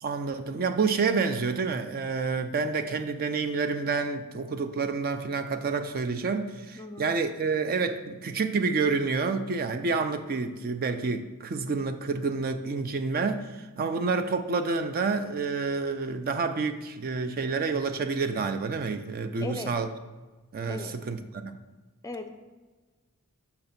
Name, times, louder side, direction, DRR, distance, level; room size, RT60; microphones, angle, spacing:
voice 1, 0.0-19.9 20.5-21.5, right 4 dB, 45° right, 8 dB, 0.4 m, -29 dB
voice 2, 6.8-7.1 19.4-19.7 20.7-20.9 22.0-22.3, left 3 dB, 15° left, 6 dB, 0.5 m, -37 dB
7.0 x 2.9 x 5.7 m, 1.3 s
head